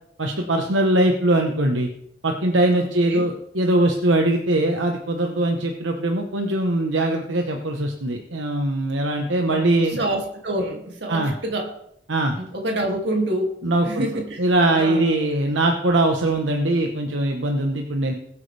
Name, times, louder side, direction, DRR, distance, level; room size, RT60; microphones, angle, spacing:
voice 1, 0.2-1.9 2.2-10.0 11.1-11.3 12.1-12.4 13.6-18.1, right 1 dB, 80° right, 2 dB, 1.2 m, -21 dB
voice 2, 2.8-3.3 9.5-11.7 12.3-13.6 13.8-14.5 14.7-15.1, right 1 dB, 60° right, 1 dB, 2.6 m, -27 dB
21.0 x 8.5 x 3.4 m, 0.73 s
head